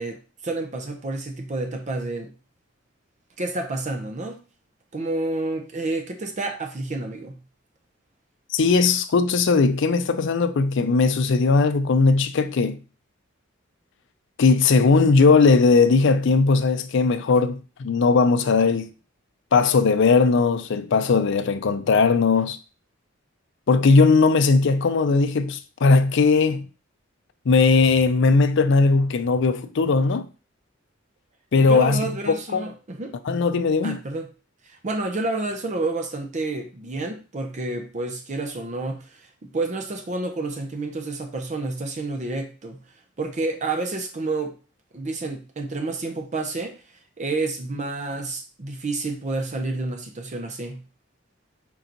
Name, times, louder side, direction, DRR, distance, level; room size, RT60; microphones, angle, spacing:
voice 1, 0.0-2.3 3.4-4.4 4.9-7.4 31.6-33.1 33.8-34.3 34.8-42.8 43.2-44.5 44.9-46.8 47.2-50.8, right 2 dB, 35° right, 0.6 m, -29 dB
voice 2, 8.5-12.8 14.4-18.9 19.5-22.6 23.7-26.7 27.5-30.3 31.5-32.0 32.3-32.6 33.3-34.0, left 4 dB, 65° left, 0.5 m, -18 dB
4.5 x 2.9 x 3.9 m
head